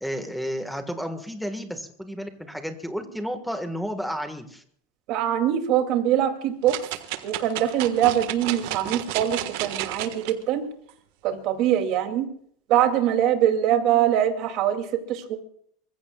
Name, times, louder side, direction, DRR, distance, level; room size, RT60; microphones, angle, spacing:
voice 1, 0.0-4.6, equal, ahead, 6 dB, 1.6 m, -32 dB
voice 2, 5.1-6.7 7.2-10.7 11.2-12.3 12.7-15.4, right 10 dB, 45° right, 5 dB, 2.6 m, -23 dB
sound 1, 6.7-10.3 10.9-11.0, right 14 dB, 60° right, 1.5 m, -32 dB
25.0 x 21.5 x 2.4 m, 0.64 s
supercardioid pair, 170°, 0 cm